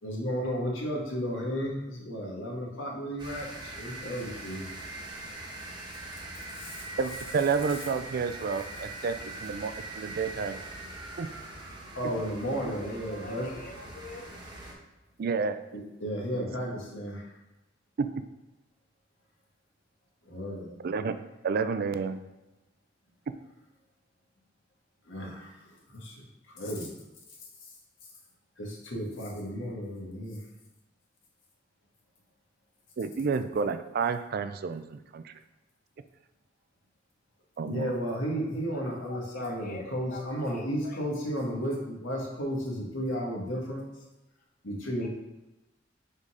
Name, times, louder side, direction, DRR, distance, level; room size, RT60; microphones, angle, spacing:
voice 1, 0.0-4.6 6.6-6.8 11.9-13.5 16.0-17.2 20.2-20.7 25.1-25.6 25.9-26.2 26.5-26.9 28.6-30.4 37.6-43.8 44.6-45.1, equal, 90° left, -2 dB, 1.7 m, -33 dB
sound 1, 3.2-14.7, right 2 dB, 25° right, 1.2 m, -42 dB
voice 2, 7.0-10.6 11.2-11.3 15.2-15.6 18.0-18.2 20.8-21.1 21.4-22.2 33.0-35.4 37.6-37.9, right 5 dB, 50° right, 11 dB, 0.4 m, -30 dB
voice 3, 12.8-14.3 38.5-41.1 45.0-45.1, left 2 dB, 45° left, 3 dB, 0.6 m, -45 dB
5.3 x 4.0 x 4.9 m, 1.0 s
head